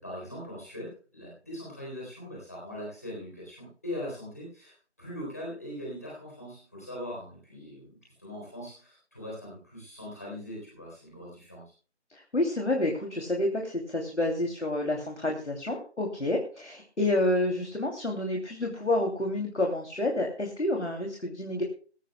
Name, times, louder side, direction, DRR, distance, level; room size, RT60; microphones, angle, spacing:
voice 1, 0.0-11.6, left 1 dB, 15° left, -4 dB, 3.8 m, -41 dB
voice 2, 12.1-21.6, left 1 dB, 80° left, 1 dB, 2.8 m, -29 dB
19.0 x 16.0 x 2.2 m, 0.39 s
figure-of-eight pair, 180°, 35 cm